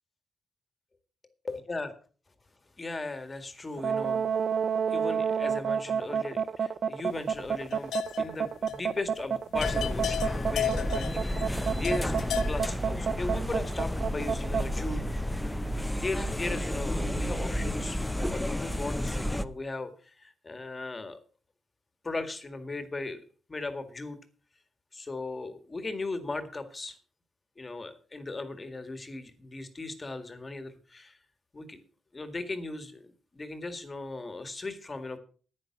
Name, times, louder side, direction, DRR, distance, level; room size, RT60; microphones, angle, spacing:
voice 1, 1.5-1.9 2.8-4.3 4.9-11.5 11.7-12.1 12.5-15.0 16.0-18.0 18.3-21.2 22.0-23.2 23.5-24.2 24.9-27.0 27.6-31.2 31.5-31.8 32.1-35.2, left 3 dB, 25° left, 9 dB, 1.9 m, -37 dB
sound 1, 3.8-14.7, right 7 dB, 55° right, 0.5 m, -29 dB
sound 2, 7.3-8.4 8.7-8.8 9.2-9.3 9.6-12.6, left 10 dB, 85° left, 0.8 m, -34 dB
sound 3, 9.5-19.4, equal, 5° left, 0.7 m, -31 dB
10.5 x 9.9 x 6.0 m, 0.39 s
cardioid pair, 120°, 0 cm